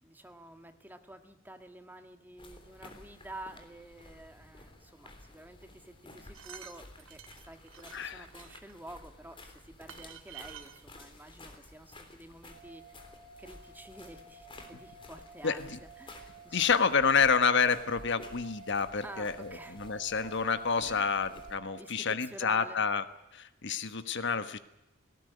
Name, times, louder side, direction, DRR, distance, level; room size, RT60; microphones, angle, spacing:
voice 1, 0.0-13.0 13.4-16.8 19.0-19.8 20.8-21.2 21.8-22.8, right 1 dB, 10° right, 7 dB, 1.7 m, -50 dB
sound 1, 2.4-21.6, left 2 dB, 25° left, 3.5 m, -53 dB
sound 2, 6.1-8.7 9.5-9.6 9.9-10.8 11.5-11.6 11.8-11.9, right 9 dB, 70° right, 1.6 m, -49 dB
voice 2, 7.9-8.2 15.4-15.8 16.5-23.0 23.3-24.6, left 5 dB, 60° left, 11 dB, 1.2 m, -29 dB
sound 3, 12.5-21.8, right 5 dB, 40° right, 5.9 m, -52 dB
18.5 x 18.0 x 9.5 m, 0.87 s
head